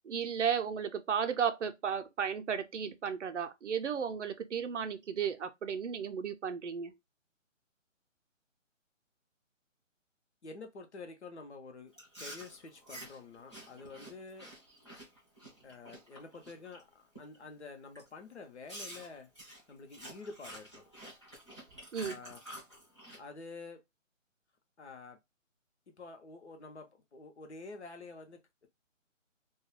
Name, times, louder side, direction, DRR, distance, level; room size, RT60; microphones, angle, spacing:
voice 1, 0.0-6.9 21.9-22.2, right 7 dB, 65° right, 0.5 m, -34 dB
voice 2, 10.4-14.5 15.6-19.3 19.7-20.7 22.0-22.4 23.2-23.8 24.8-25.2 26.0-28.7, left 3 dB, 60° left, 0.7 m, -48 dB
Chewing mastication, 11.9-16.8 17.1-17.5 17.9-18.1 18.7-23.2, right 1 dB, 20° left, 0.6 m, -49 dB
2.3 x 2.0 x 3.0 m
hypercardioid pair, 170°, 39 cm